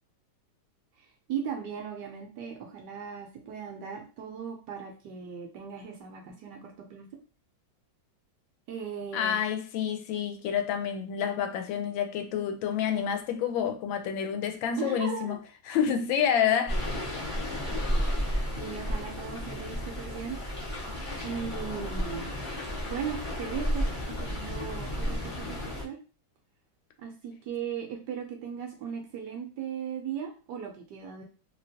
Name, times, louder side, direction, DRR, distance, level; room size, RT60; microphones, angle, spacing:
voice 1, 1.0-7.1 8.7-9.4 14.8-15.4 18.6-20.4 21.2-22.3 22.8-26.0 27.0-31.2, right 7 dB, 70° right, 1.1 m, -38 dB
voice 2, 9.1-15.4 15.7-17.0, left 8 dB, 80° left, 1.3 m, -28 dB
sound 1, 16.7-25.8, equal, 35° left, 0.5 m, -32 dB
3.1 x 2.9 x 2.6 m
omnidirectional pair, 2.1 m